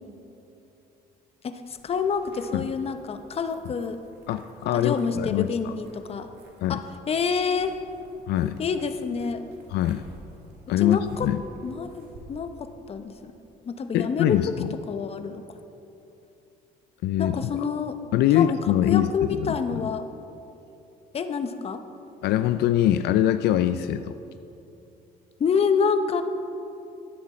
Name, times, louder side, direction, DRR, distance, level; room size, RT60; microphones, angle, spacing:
voice 1, 1.4-4.0 4.7-6.3 6.7-7.8 8.6-9.4 10.8-11.3 11.6-13.3 13.6-14.4 14.9-15.4 17.2-18.0 18.3-20.1 21.1-21.8 25.4-26.2, left 5 dB, 35° left, 9 dB, 0.7 m, -28 dB
sound 1, 1.6-12.7, right 2 dB, 75° right, 1.7 m, -52 dB
voice 2, 4.3-5.5 6.6-6.8 8.3-8.6 9.7-10.0 10.7-11.4 13.9-14.7 17.0-17.4 18.1-19.1 19.4-19.6 22.2-24.1, left 12 dB, 75° left, 11 dB, 0.4 m, -23 dB
12.5 x 10.0 x 4.3 m, 2.8 s
cardioid pair, 110°, 17 cm